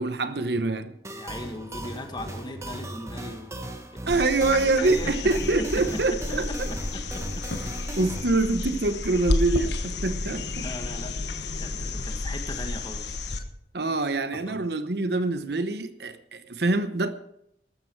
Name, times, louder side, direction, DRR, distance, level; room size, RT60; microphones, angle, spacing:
voice 1, 0.0-1.0 4.1-6.5 8.0-10.7 13.7-17.1, right 2 dB, 65° right, 0.9 m, -25 dB
sound 1, 1.0-8.2, right 1 dB, 15° right, 1.2 m, -38 dB
voice 2, 1.1-3.6 4.7-5.1 5.6-5.7 5.9-6.0 6.9-7.4 10.5-11.1 11.6-13.2 14.3-14.6, left 1 dB, 25° left, 1.7 m, -38 dB
sound 2, 4.1-13.4 15.5-15.6, left 2 dB, 70° left, 1.3 m, -31 dB
14.5 x 13.0 x 4.6 m
head